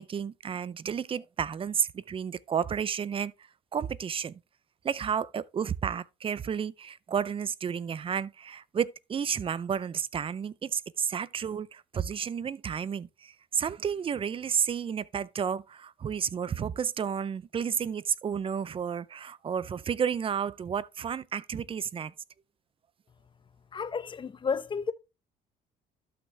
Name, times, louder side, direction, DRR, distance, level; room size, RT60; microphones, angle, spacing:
voice 1, 0.0-3.3 3.7-4.4 4.8-22.1, right 7 dB, 30° right, 0.5 m, -31 dB
voice 2, 23.7-24.9, left 6 dB, 30° left, 0.8 m, -32 dB
13.0 x 5.8 x 3.3 m
cardioid pair, 110°, 17 cm